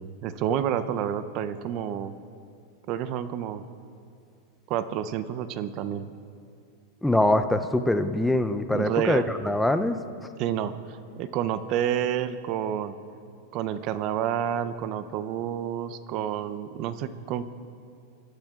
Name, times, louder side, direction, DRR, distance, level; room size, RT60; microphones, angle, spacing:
voice 1, 0.0-2.1 2.9-3.6 4.7-6.1 8.7-9.3 10.4-10.7 11.2-13.0 13.5-17.4, right 10 dB, 45° right, 13 dB, 0.5 m, -29 dB
voice 2, 7.0-10.0, left 1 dB, 5° left, 9 dB, 0.5 m, -23 dB
22.0 x 12.0 x 2.4 m, 2.4 s
supercardioid pair, 140°, 0 cm